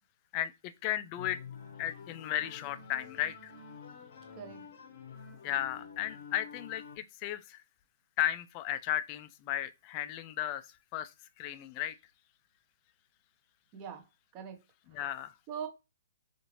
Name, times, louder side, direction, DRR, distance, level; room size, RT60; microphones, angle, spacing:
voice 1, 0.8-1.4 1.8-3.5 5.4-7.6 8.2-10.7 10.9-11.1 11.4-11.9 14.9-15.3, left 12 dB, 30° left, 0.3 m, -34 dB
sound 1, 1.2-7.0, left 5 dB, 60° left, 0.7 m, -49 dB
voice 2, 13.7-14.0 14.3-14.6 14.9-15.2 15.5-15.7, right 7 dB, 30° right, 0.7 m, -42 dB
2.7 x 2.5 x 3.0 m
hypercardioid pair, 150°, 0 cm